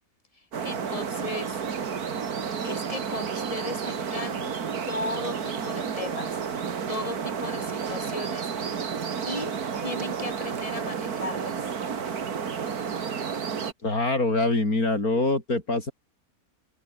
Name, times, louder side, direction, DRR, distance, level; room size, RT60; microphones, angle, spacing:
sound 1, 0.5-13.7, right 6 dB, 85° right, 2.2 m, -31 dB
voice 1, 0.6-1.5 2.6-4.5 4.9-6.6 6.9-8.5 9.3-9.5 9.8-11.7, left 2 dB, 20° left, 4.9 m, -36 dB
voice 2, 13.8-15.9, left 2 dB, 75° left, 5.8 m, -24 dB
open air
omnidirectional pair, 1.6 m